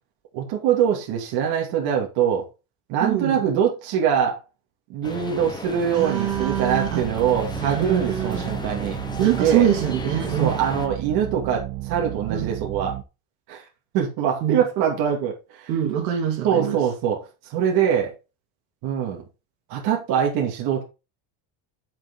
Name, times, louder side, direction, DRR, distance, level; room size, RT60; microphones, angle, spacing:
voice 1, 0.3-2.5 2.9-4.4 4.9-9.0 9.4-9.7 10.4-13.0 13.5-13.7 13.9-15.7 16.4-18.1 18.8-19.2 19.7-20.8, right 8 dB, 50° right, 2.6 m, -23 dB
voice 2, 3.0-3.4 5.9-7.0 7.6-8.4 9.2-10.6 12.3-12.5 14.4-14.6 15.7-16.8, right 10 dB, 85° right, 3.1 m, -24 dB
sound 1, 5.0-10.9, left 3 dB, 10° left, 1.1 m, -35 dB
sound 2, 6.3-13.0, right 17 dB, 30° right, 0.3 m, -33 dB
8.3 x 7.4 x 3.8 m
cardioid pair, 165°, 45 cm